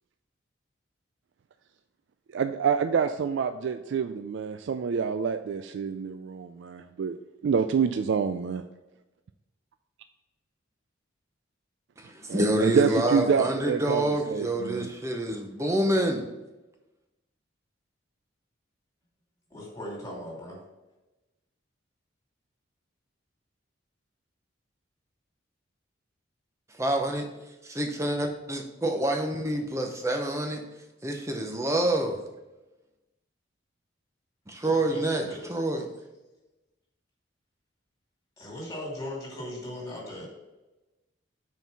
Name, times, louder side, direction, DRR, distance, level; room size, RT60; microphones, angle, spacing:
voice 1, 2.3-7.2 7.4-8.6 12.3-14.9, right 6 dB, 65° right, 9 dB, 0.3 m, -27 dB
voice 2, 12.0-16.2 26.8-27.3 27.6-30.6 31.0-32.2 34.5-35.9, right 1 dB, 15° right, 3 dB, 0.7 m, -27 dB
voice 3, 19.5-20.6 34.6-35.5 38.4-40.3, left 1 dB, 20° left, -4 dB, 2.5 m, -38 dB
5.7 x 4.5 x 5.5 m, 1.1 s
head